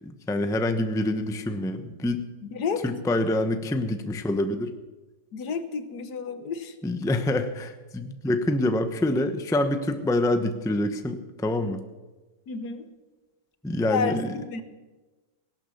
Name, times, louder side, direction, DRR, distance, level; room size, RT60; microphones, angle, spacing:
voice 1, 0.0-2.2 2.8-4.7 6.8-11.8 13.6-14.4, left 1 dB, 5° left, 8 dB, 0.6 m, -26 dB
voice 2, 5.3-6.7 12.5-12.8 13.9-14.6, left 5 dB, 70° left, 11 dB, 1.7 m, -30 dB
17.0 x 12.0 x 7.1 m, 1.2 s
omnidirectional pair, 1.8 m